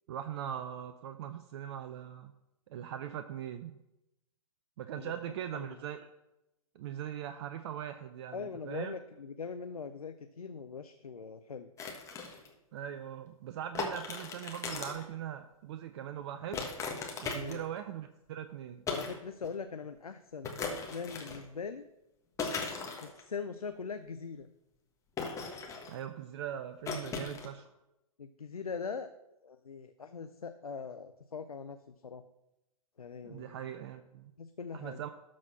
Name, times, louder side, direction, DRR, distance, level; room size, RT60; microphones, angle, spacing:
voice 1, 0.1-2.3 2.7-3.8 4.8-6.1 6.7-8.9 12.7-16.7 17.2-18.8 25.9-27.7 33.2-34.3 34.7-35.1, right 10 dB, 45° right, 9 dB, 0.6 m, -41 dB
voice 2, 4.9-5.8 8.3-11.7 17.3-17.7 18.9-21.9 23.0-24.5 28.2-29.1 29.4-32.2 33.0-33.7 34.4-35.0, left 5 dB, 85° left, 9 dB, 0.6 m, -42 dB
sound 1, 11.8-12.5 13.8-15.1 16.5-17.8 18.9-19.2 19.4-19.5 20.4-21.5 22.4-23.2 25.2-26.0 26.9-27.5, left 4 dB, 15° left, 1.5 m, -38 dB
12.5 x 4.2 x 6.0 m, 0.91 s
figure-of-eight pair, 115°, 18 cm